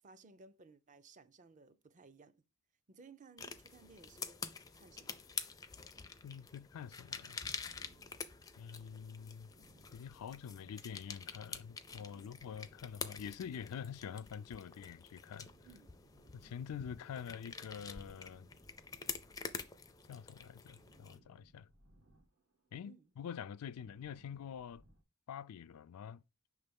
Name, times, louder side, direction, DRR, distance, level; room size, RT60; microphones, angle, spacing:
voice 1, 0.0-2.4 2.9-4.5 4.7-5.2 7.7-8.0 12.1-12.4 15.6-16.1 22.8-23.1, right 4 dB, 35° right, 0.5 m, -60 dB
sound 1, 3.4-21.2, left 5 dB, 15° left, 0.4 m, -48 dB
voice 2, 6.2-7.4 8.6-9.5 9.9-15.5 16.3-18.5 20.1-21.7 22.7-24.8 25.3-26.2, left 7 dB, 80° left, 0.4 m, -46 dB
sound 2, 7.4-20.0 20.3-25.0, right 1 dB, 65° right, 1.1 m, -68 dB
6.0 x 3.3 x 5.2 m
head